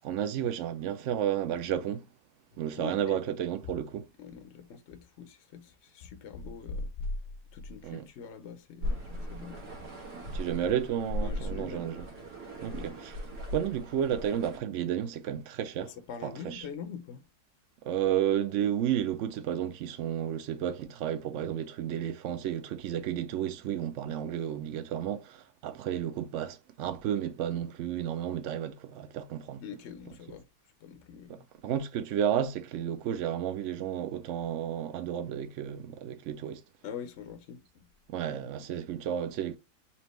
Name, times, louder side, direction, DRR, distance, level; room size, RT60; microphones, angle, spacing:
voice 1, 0.0-2.0 2.6-4.1 7.8-8.1 10.3-12.0 12.6-13.2 13.5-15.9 16.2-16.7 17.8-29.6 31.3-36.6 38.1-39.6, right 10 dB, 65° right, 0.7 m, -32 dB
voice 2, 2.8-3.4 4.2-7.1 7.5-9.6 11.2-11.9 15.8-17.2 29.6-30.5 30.8-31.4 36.8-37.9, left 5 dB, 65° left, 0.7 m, -43 dB
sound 1, 8.8-14.6, left 1 dB, 90° right, 1.8 m, -38 dB
4.3 x 2.8 x 3.0 m
omnidirectional pair, 1.7 m